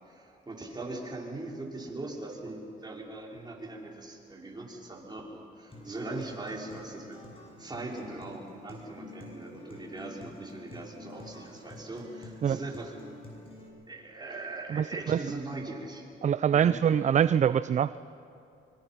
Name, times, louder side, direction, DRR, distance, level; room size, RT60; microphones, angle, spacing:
voice 1, 0.0-7.2 7.6-12.9 13.9-16.1 16.5-16.8, right 2 dB, 20° right, -2 dB, 4.7 m, -40 dB
Acoustic guitar, 5.7-13.7, left 2 dB, 30° left, 6.7 m, -48 dB
voice 2, 14.7-15.2 16.2-18.0, right 8 dB, 40° right, 15 dB, 0.4 m, -24 dB
24.5 x 23.0 x 5.8 m, 2.7 s
cardioid pair, 90°, 20 cm